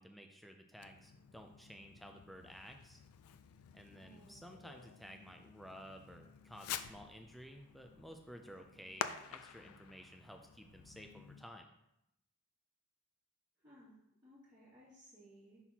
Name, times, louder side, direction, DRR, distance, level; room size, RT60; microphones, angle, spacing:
voice 1, 0.0-3.0 3.7-11.7, equal, ahead, 4 dB, 0.3 m, -54 dB
Fireworks, 0.8-11.5, left 8 dB, 80° left, 0.4 m, -49 dB
voice 2, 3.9-4.5 8.4-8.9 13.6-13.9 14.2-15.6, equal, 20° right, -14 dB, 2.0 m, -61 dB
6.0 x 5.7 x 2.8 m, 0.82 s
head